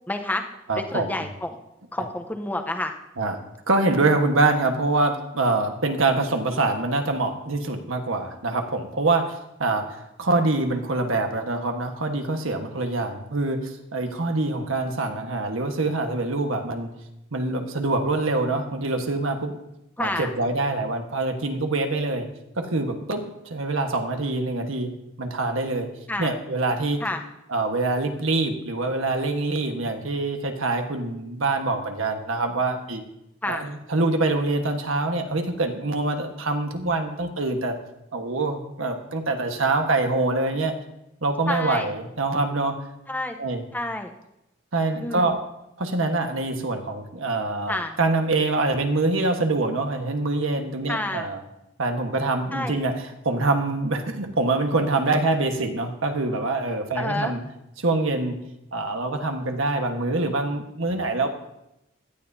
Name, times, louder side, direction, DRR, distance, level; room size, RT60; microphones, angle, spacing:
voice 1, 0.1-0.4 0.8-1.6 1.9-2.9 20.0-20.3 26.1-26.3 27.0-27.2 33.4-33.7 41.5-41.9 43.1-43.4 43.7-44.1 45.0-45.3 47.7-48.0 50.9-51.3 52.5-52.8 56.9-57.3, left 1 dB, 10° left, 5 dB, 0.8 m, -29 dB
voice 2, 0.7-1.2 3.2-3.4 3.7-16.9 17.3-19.6 20.0-22.3 22.6-24.9 25.2-25.9 26.2-27.0 27.5-33.0 33.5-37.8 38.1-40.7 41.2-42.7 43.4-43.6 44.7-45.4 45.8-51.4 51.8-57.4 57.8-58.4 58.7-61.3, right 2 dB, 80° right, 4 dB, 1.4 m, -25 dB
17.0 x 12.5 x 2.8 m, 0.87 s
head